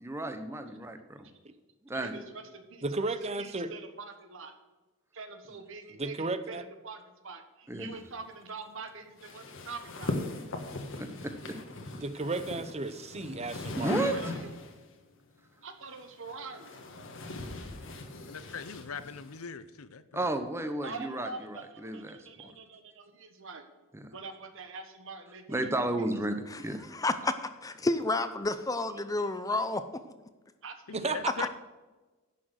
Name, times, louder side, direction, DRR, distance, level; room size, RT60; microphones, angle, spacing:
voice 1, 0.0-1.3 1.8-2.1 7.7-7.9 11.0-11.6 13.8-14.1 20.1-21.3 21.8-22.2 25.5-26.8, right 1 dB, 10° right, 7 dB, 1.0 m, -32 dB
voice 2, 1.9-4.5 5.1-10.2 14.0-14.5 15.6-16.8 20.8-21.5 21.9-23.7 24.1-26.1 30.6-31.5, right 4 dB, 65° right, 7 dB, 1.4 m, -45 dB
voice 3, 2.8-3.7 5.9-6.6 11.8-13.9 30.9-31.5, right 3 dB, 30° right, 11 dB, 0.6 m, -34 dB
sound 1, 9.2-14.8 15.9-19.4, left 2 dB, 65° left, 1.5 m, -39 dB
voice 4, 18.3-20.3 30.9-31.5, left 6 dB, 90° left, 14 dB, 0.7 m, -41 dB
voice 5, 26.9-29.8, left 2 dB, 15° left, 11 dB, 0.6 m, -30 dB
11.0 x 6.3 x 6.4 m, 1.2 s
head